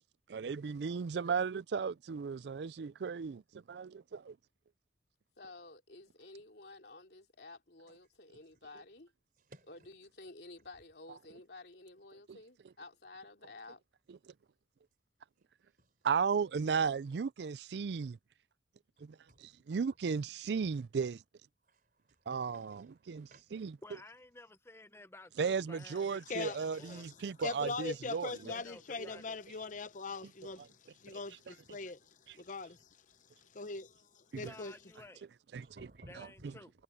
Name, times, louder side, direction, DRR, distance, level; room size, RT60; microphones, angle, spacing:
voice 1, 0.3-4.4 12.3-12.4 14.3-14.4 16.0-18.2 19.0-21.2 22.3-23.8 25.4-28.5 29.0-29.1 31.1-31.2 34.3-34.4 35.5-35.7, right 5 dB, 70° right, 0.4 m, -35 dB
voice 2, 5.4-9.1 9.7-13.8, left 2 dB, 65° left, 3.0 m, -52 dB
voice 3, 9.4-9.7 15.4-15.5 15.8-16.1 19.0-19.7 21.6-23.6 35.5-36.6, right 1 dB, 50° right, 4.4 m, -60 dB
voice 4, 23.8-27.1 28.5-29.4 34.3-35.3 36.1-36.7, left 2 dB, 15° left, 0.9 m, -54 dB
voice 5, 26.3-26.6 26.8-27.1 27.4-34.7, left 3 dB, 45° left, 0.8 m, -42 dB
head